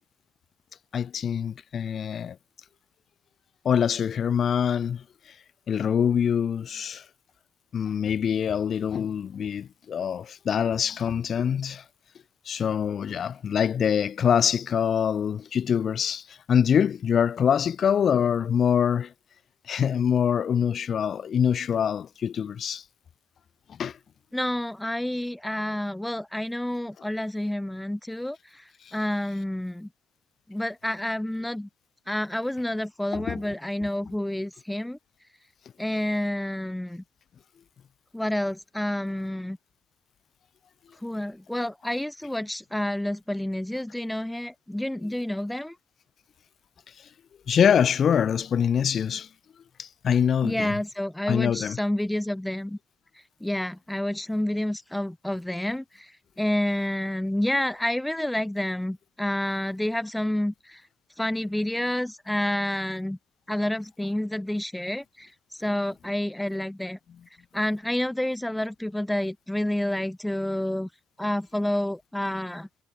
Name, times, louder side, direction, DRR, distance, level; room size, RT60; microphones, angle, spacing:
voice 1, 0.9-2.4 3.6-5.4 5.7-7.1 7.7-11.8 12.5-19.1 19.7-22.8 23.7-24.0 28.8-29.0 33.1-33.4 47.0-47.1 47.5-49.3 49.8-50.8 51.3-51.8, left 8 dB, 40° left, 2.1 m, -24 dB
voice 2, 24.3-28.6 28.9-29.9 30.5-31.7 32.1-35.0 35.8-37.0 38.1-39.6 41.0-45.7 50.4-52.8 53.4-56.1 56.4-60.8 61.2-63.2 63.5-65.3 65.6-67.0 67.5-70.9 71.2-72.7, left 1 dB, 5° left, 2.3 m, -29 dB
cardioid pair, 155°, 0 cm